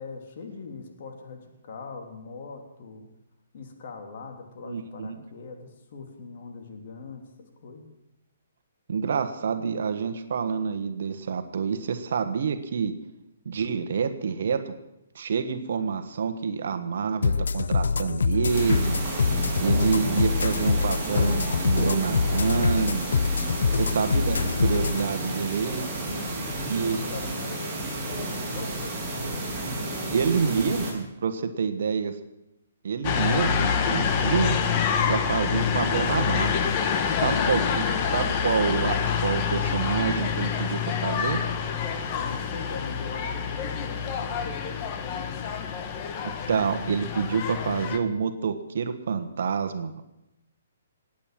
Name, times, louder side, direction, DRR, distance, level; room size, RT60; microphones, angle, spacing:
voice 1, 0.0-3.0 3.5-7.9 23.4-23.7 26.0-29.5 29.8-30.3 37.0-37.3 42.1-45.4, left 4 dB, 50° left, 3 dB, 3.1 m, -41 dB
voice 2, 4.6-5.2 8.9-12.9 13.4-14.7 15.1-19.0 19.6-23.1 23.8-25.8 26.7-27.0 30.1-32.2 32.8-34.6 35.1-36.7 37.2-41.4 46.5-50.0, right 6 dB, 65° right, 9 dB, 1.4 m, -27 dB
sound 1, 17.2-25.0, left 5 dB, 80° left, 0.6 m, -25 dB
sound 2, 18.5-30.9, right 1 dB, 15° right, 6.7 m, -31 dB
Doncaster Station Ambience, 33.0-48.0, left 7 dB, 30° left, 1.4 m, -27 dB
18.5 x 8.9 x 7.6 m, 0.89 s
hypercardioid pair, 155°, 0 cm